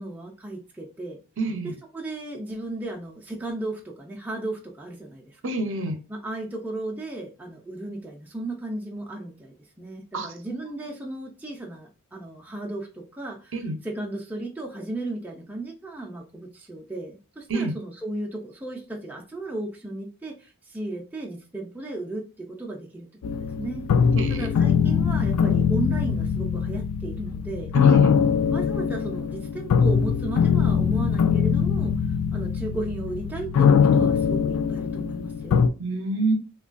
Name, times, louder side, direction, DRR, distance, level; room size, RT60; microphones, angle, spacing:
voice 1, 0.0-1.2 1.6-5.4 6.1-13.6 13.8-23.1 23.4-23.9 24.3-27.7 28.5-31.9 32.3-35.6, right 2 dB, 5° right, 0.4 m, -35 dB
voice 2, 1.4-1.7 5.4-6.0 10.1-10.6 13.5-13.7 17.5-17.7 24.1-24.5 27.7-28.1 35.8-36.3, right 2 dB, 60° right, 0.6 m, -27 dB
sound 1, 23.2-35.7, left 6 dB, 75° left, 0.3 m, -22 dB
3.1 x 2.2 x 2.4 m
head